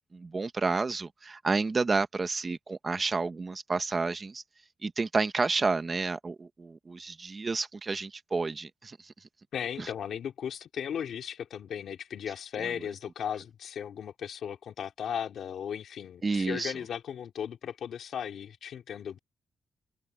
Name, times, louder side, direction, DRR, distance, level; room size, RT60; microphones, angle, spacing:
voice 1, 0.1-4.4 4.8-9.1 9.8-9.9 12.6-12.7 16.2-16.7, right 4 dB, 25° right, 1.2 m, -30 dB
voice 2, 9.5-19.2, left 8 dB, 80° left, 2.4 m, -36 dB
open air
wide cardioid pair, 170°, 0 cm